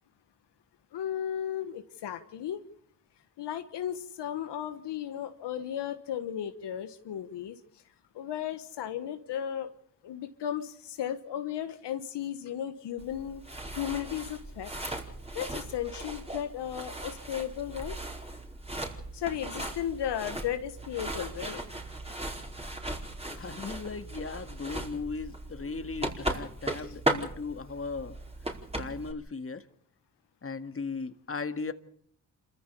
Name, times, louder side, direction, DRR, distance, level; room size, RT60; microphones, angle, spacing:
voice 1, 0.9-2.6 3.4-7.6 8.1-9.7 10.0-13.4 13.8-14.7 15.3-18.0 19.1-21.6 26.9-27.0, left 10 dB, 80° left, 9 dB, 1.3 m, -35 dB
sound 1, 13.0-29.1, right 1 dB, 15° right, 4.6 m, -37 dB
voice 2, 23.3-28.2 28.8-29.6 30.4-31.7, left 4 dB, 30° left, 9 dB, 1.9 m, -37 dB
27.0 x 14.5 x 6.9 m, 0.63 s
supercardioid pair, 45°, 41 cm